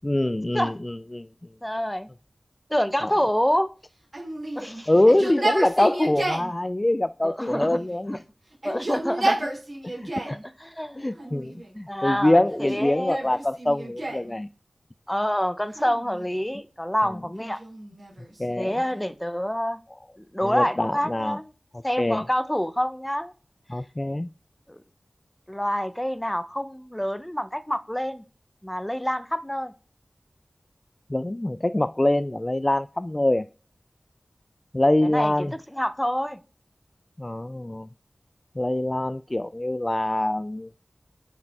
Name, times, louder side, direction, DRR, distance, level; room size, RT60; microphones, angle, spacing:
voice 1, 0.0-1.3 3.0-3.1 4.9-8.2 10.0-10.1 11.0-14.5 18.4-18.7 20.4-21.4 22.0-22.2 23.7-24.3 31.1-33.5 34.7-35.5 37.2-37.9 38.6-40.7, left 1 dB, 30° left, 0.3 m, -24 dB
voice 2, 1.6-2.1 2.7-3.7 4.6-4.9 5.2-5.3 7.2-7.8 8.6-9.5 10.2-11.5 11.9-13.3 15.1-17.6 18.6-19.8 20.2-21.5 21.8-23.3 24.7-24.8 25.5-28.2 28.6-29.7 35.1-36.4, equal, 10° left, 0.8 m, -27 dB
Yell, 4.1-6.5 7.4-8.1 8.5-10.4 11.1-11.8 12.5-14.3 15.7-16.5 17.4-19.1, right 2 dB, 55° right, 3.9 m, -32 dB
9.3 x 4.9 x 3.6 m
wide cardioid pair, 45°, 0 cm